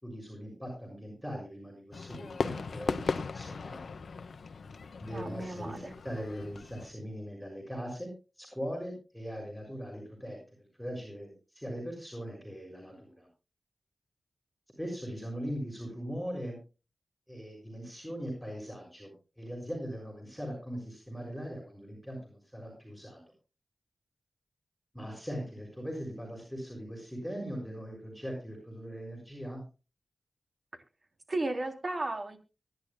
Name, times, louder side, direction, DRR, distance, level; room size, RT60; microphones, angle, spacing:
voice 1, 0.0-3.9 5.0-8.1 8.4-10.4 10.7-13.3 14.8-16.6 17.3-19.1 19.4-23.2 24.9-29.6, equal, ahead, 0 dB, 6.6 m, -40 dB
Fireworks, 1.9-6.9, left 4 dB, 75° left, 1.1 m, -37 dB
voice 2, 5.1-5.9 31.3-32.4, right 2 dB, 40° right, 5 dB, 3.4 m, -34 dB
24.0 x 11.0 x 2.3 m, 0.32 s
cardioid pair, 60°, 0 cm